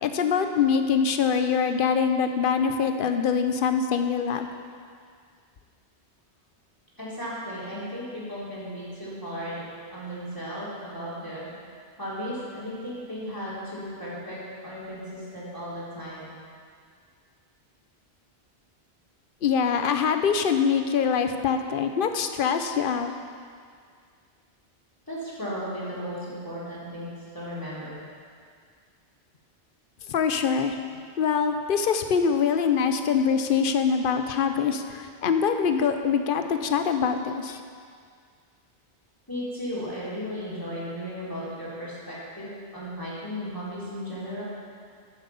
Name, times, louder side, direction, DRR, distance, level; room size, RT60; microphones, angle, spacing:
voice 1, 0.0-4.5 19.4-23.1 30.1-30.8 31.2-37.6, left 6 dB, 55° left, 7 dB, 0.9 m, -24 dB
voice 2, 7.0-9.6 9.9-11.5 12.0-16.3 25.1-27.1 27.3-28.0 39.3-44.4, equal, 20° left, -9 dB, 3.5 m, -35 dB
9.8 x 8.2 x 7.0 m, 2.1 s
omnidirectional pair, 1.2 m